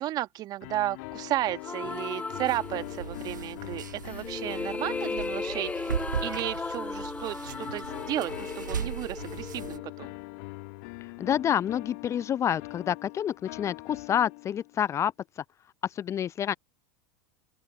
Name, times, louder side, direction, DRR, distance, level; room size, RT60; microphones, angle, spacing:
voice 1, 0.0-5.9 6.2-10.1, right 14 dB, 40° right, 1.4 m, -33 dB
sound 1, 0.6-6.4 7.4-14.8, left 28 dB, 60° left, 1.9 m, -43 dB
sound 2, 1.6-3.3 4.0-10.1, left 4 dB, 15° left, 1.3 m, -36 dB
sound 3, 2.5-9.8, right 7 dB, 85° right, 1.1 m, -38 dB
voice 2, 11.0-15.4 15.8-16.5, left 9 dB, 30° left, 0.5 m, -28 dB
open air
hypercardioid pair, 85°, 10 cm